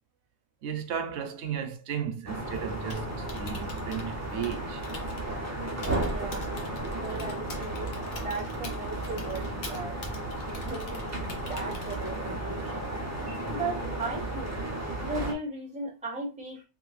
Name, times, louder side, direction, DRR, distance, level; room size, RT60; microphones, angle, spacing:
voice 1, 0.6-4.8, right 8 dB, 70° right, 0.8 m, -35 dB
sound 1, 2.3-15.3, right 1 dB, 30° right, 0.3 m, -34 dB
Typing, 2.8-12.3, left 1 dB, 65° left, 0.9 m, -44 dB
voice 2, 5.9-6.5 7.0-7.9 8.2-10.0 10.5-12.9 13.5-14.7 15.0-16.6, right 3 dB, 5° right, 0.7 m, -37 dB
2.6 x 2.5 x 3.1 m
omnidirectional pair, 1.2 m